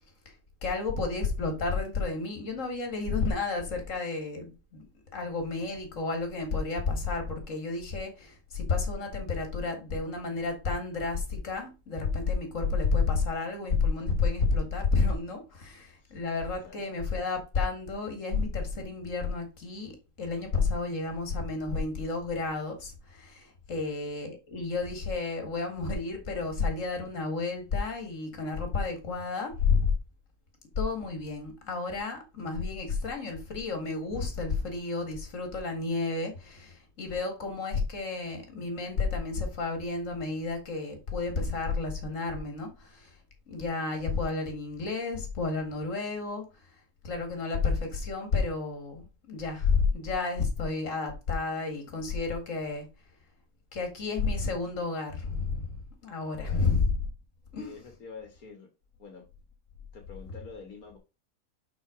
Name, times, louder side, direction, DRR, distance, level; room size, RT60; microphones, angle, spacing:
voice 1, 0.6-29.9 30.8-43.1 43.5-46.5 47.0-52.9 53.7-56.9 57.5-57.8, left 4 dB, 60° left, 2.3 m, -31 dB
voice 2, 56.4-56.7 57.6-58.7 59.0-59.2 59.9-61.0, left 5 dB, 80° left, 1.9 m, -47 dB
5.7 x 5.6 x 4.9 m
omnidirectional pair, 1.5 m